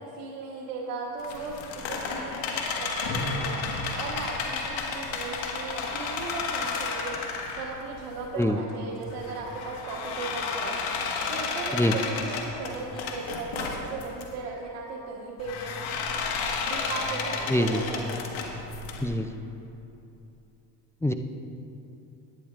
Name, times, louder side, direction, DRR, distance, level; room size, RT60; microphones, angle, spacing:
voice 1, 0.0-3.6 4.0-7.2 7.5-10.8 11.3-15.8 16.7-18.2, right 4 dB, 75° right, -5 dB, 1.4 m, -37 dB
sound 1, 1.2-8.4 8.9-14.3 15.4-19.0, left 4 dB, 70° left, 1.7 m, -32 dB
voice 2, 17.5-17.8 19.0-19.3 21.0-21.1, left 1 dB, 5° left, 7 dB, 0.4 m, -24 dB
17.5 x 10.5 x 2.5 m, 2.9 s
supercardioid pair, 70°, 47 cm